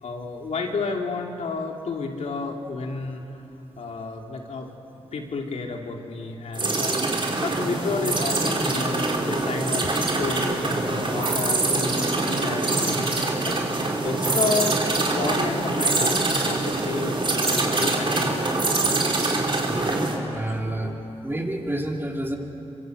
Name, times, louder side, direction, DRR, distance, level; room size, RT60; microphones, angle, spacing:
voice 1, 0.0-3.2 3.8-4.7 5.1-13.0 13.4-13.6 14.0-14.8 15.0-18.4 18.8-18.9 20.6-20.9, left 4 dB, 75° left, 1 dB, 3.0 m, -31 dB
sound 1, 6.5-20.2, right 2 dB, 45° right, 4.3 m, -24 dB
voice 2, 19.7-20.9 21.2-22.4, right 1 dB, 20° right, 0 dB, 4.0 m, -29 dB
26.0 x 24.0 x 8.0 m, 2.8 s
cardioid pair, 65°, 12 cm